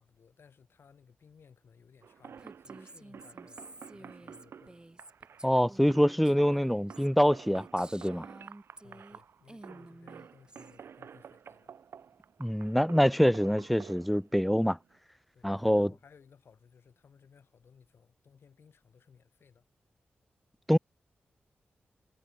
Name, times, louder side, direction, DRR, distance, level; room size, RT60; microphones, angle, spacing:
voice 1, 0.0-3.6 3.9-4.9 8.8-11.7 15.3-19.7, left 6 dB, 70° left, 5.1 m, -60 dB
sound 1, 2.0-14.9, right 7 dB, 80° right, 5.3 m, -51 dB
Female speech woman speaking, 2.4-9.2 9.5-10.8, right 1 dB, 20° right, 7.7 m, -52 dB
voice 2, 5.4-8.2 12.4-14.8 15.4-15.9 20.7-20.8, equal, ahead, 0.5 m, -25 dB
cardioid pair, 50°, 4 cm